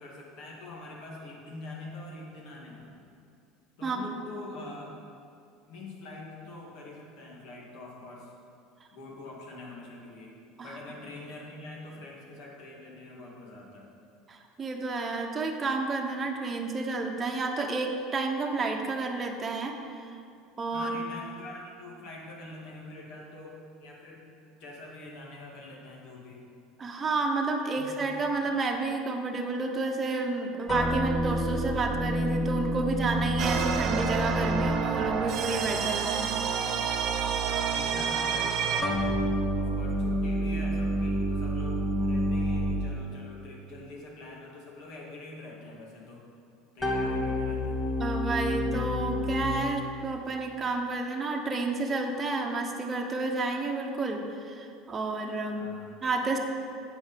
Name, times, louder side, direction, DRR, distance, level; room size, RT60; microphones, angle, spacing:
voice 1, 0.0-2.9 3.8-4.9 5.7-8.3 8.9-10.3 10.6-13.9 20.7-24.3 24.6-26.5 27.8-27.9 37.4-39.2 39.5-46.2 46.7-47.8 55.5-56.0, left 2 dB, 65° left, -2 dB, 2.3 m, -44 dB
voice 2, 14.3-20.1 20.6-21.0 26.8-36.2 48.0-55.7 56.0-56.4, right 3 dB, 25° right, 2 dB, 1.1 m, -30 dB
sound 1, 30.7-35.3 38.8-43.1 46.8-49.4, equal, 15° left, 1.8 m, -29 dB
sound 2, 33.4-38.8, right 7 dB, 50° right, 0.8 m, -29 dB
7.9 x 5.3 x 6.9 m, 2.4 s
supercardioid pair, 105°, 0 cm